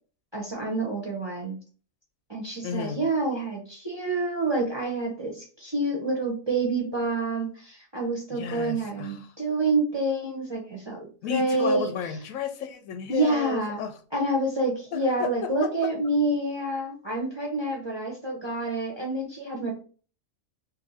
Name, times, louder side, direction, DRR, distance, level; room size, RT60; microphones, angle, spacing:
voice 1, 0.3-1.6 2.3-11.9 13.1-13.8 14.1-19.7, right 2 dB, 30° right, 0.5 m, -28 dB
voice 2, 2.6-3.1 8.3-9.1 11.2-13.9 14.9-15.0, left 7 dB, 85° left, 1.0 m, -32 dB
2.6 x 2.6 x 4.0 m
omnidirectional pair, 1.4 m